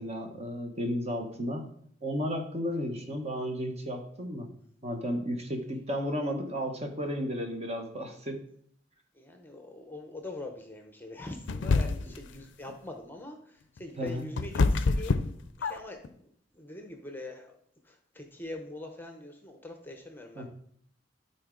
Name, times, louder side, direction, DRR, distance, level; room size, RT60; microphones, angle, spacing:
voice 1, 0.0-1.7 2.0-4.5 4.8-8.4 13.9-14.3 20.4-20.5, equal, 35° right, 3 dB, 1.2 m, -33 dB
voice 2, 9.2-17.6 17.8-20.5, left 2 dB, 10° left, 4 dB, 0.8 m, -43 dB
sound 1, 11.5-12.3 13.8-16.1, left 3 dB, 90° left, 0.5 m, -26 dB
12.5 x 4.3 x 3.8 m, 0.65 s
head